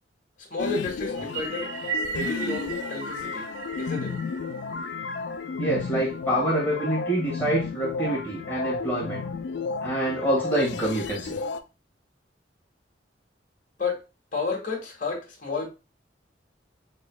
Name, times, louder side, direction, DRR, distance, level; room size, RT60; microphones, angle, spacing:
voice 1, 0.4-3.5 3.8-4.2 13.8-14.0 14.3-15.7, left 3 dB, 45° left, 0 dB, 1.5 m, -31 dB
sound 1, 0.6-11.6, left 5 dB, 75° left, 0.4 m, -33 dB
sound 2, 1.2-5.7, right 5 dB, 90° right, 1.6 m, -36 dB
voice 2, 5.6-9.2 9.8-11.4, right 1 dB, 10° left, -5 dB, 1.6 m, -26 dB
6.2 x 2.9 x 2.2 m, 0.29 s
head